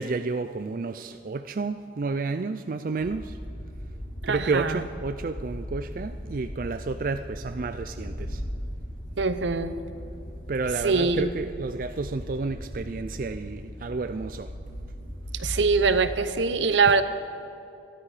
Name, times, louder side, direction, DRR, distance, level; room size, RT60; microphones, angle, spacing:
voice 1, 0.0-3.4 4.3-8.4 10.5-14.5, right 3 dB, 45° right, 9 dB, 0.4 m, -31 dB
sound 1, 3.0-16.2, equal, 85° left, 3.6 m, -38 dB
voice 2, 4.2-4.8 9.2-9.8 10.8-11.3 15.3-17.0, right 4 dB, 80° right, 11 dB, 0.8 m, -23 dB
21.0 x 12.5 x 4.9 m, 2.6 s
head